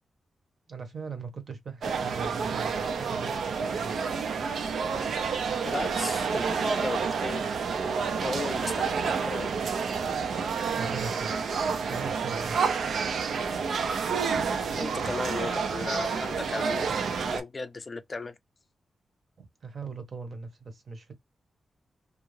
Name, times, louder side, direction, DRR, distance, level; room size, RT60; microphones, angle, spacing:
voice 1, 0.7-4.0 10.8-11.3 11.9-12.6 19.4-21.1, right 4 dB, 45° right, 0.8 m, -40 dB
sound 1, 1.8-17.4, right 5 dB, 80° right, 0.5 m, -29 dB
voice 2, 5.6-7.4 8.2-9.5 14.7-16.9 17.2-18.4, left 3 dB, 30° left, 0.4 m, -36 dB
2.4 x 2.2 x 3.1 m
wide cardioid pair, 145°, 0 cm